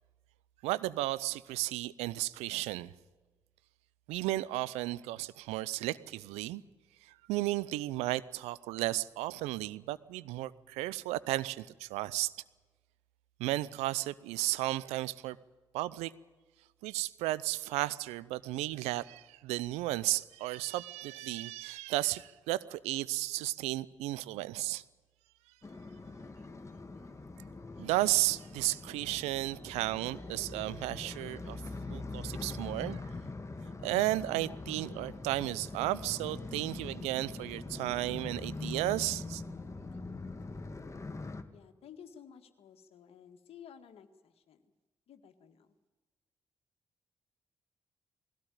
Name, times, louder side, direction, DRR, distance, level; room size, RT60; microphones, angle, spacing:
voice 1, 0.6-2.9 4.1-6.6 7.0-12.3 13.4-15.4 15.7-16.1 16.8-24.8 27.8-31.6 31.9-33.1 33.8-39.4, right 17 dB, 80° right, 0.6 m, -34 dB
sound 1, 25.6-41.4, left 3 dB, 25° left, 1.9 m, -43 dB
voice 2, 41.5-44.6 45.1-45.7, left 8 dB, 65° left, 1.8 m, -54 dB
20.5 x 17.0 x 9.1 m
hypercardioid pair, 40°, 11 cm